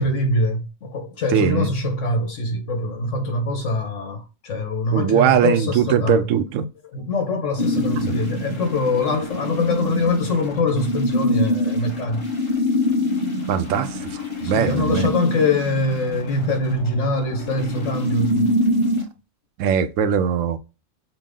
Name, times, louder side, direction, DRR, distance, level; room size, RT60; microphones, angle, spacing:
voice 1, 0.0-6.2 6.9-12.2 14.4-18.5, left 2 dB, 75° left, 1.5 m, -23 dB
voice 2, 1.3-1.7 4.9-6.7 8.0-8.2 13.5-15.1 19.6-20.6, right 8 dB, 85° right, 0.9 m, -21 dB
sound 1, 7.6-19.0, equal, 25° left, 1.2 m, -25 dB
5.8 x 2.2 x 3.7 m
omnidirectional pair, 1.3 m